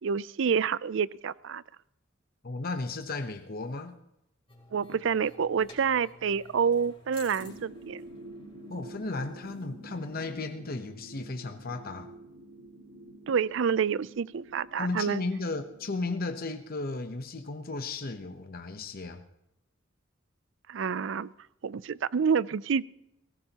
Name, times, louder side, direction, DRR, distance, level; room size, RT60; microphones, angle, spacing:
voice 1, 0.0-1.6 4.7-8.0 13.3-15.2 20.7-21.3 21.6-22.8, right 6 dB, 65° right, 19 dB, 0.4 m, -28 dB
voice 2, 2.4-4.0 8.7-12.1 14.8-19.2, left 3 dB, 50° left, 7 dB, 0.9 m, -35 dB
sound 1, 4.5-10.7, left 3 dB, 30° left, 4.5 m, -55 dB
sound 2, 7.4-17.8, right 2 dB, 90° right, 2.1 m, -49 dB
20.0 x 18.0 x 2.9 m, 0.85 s
head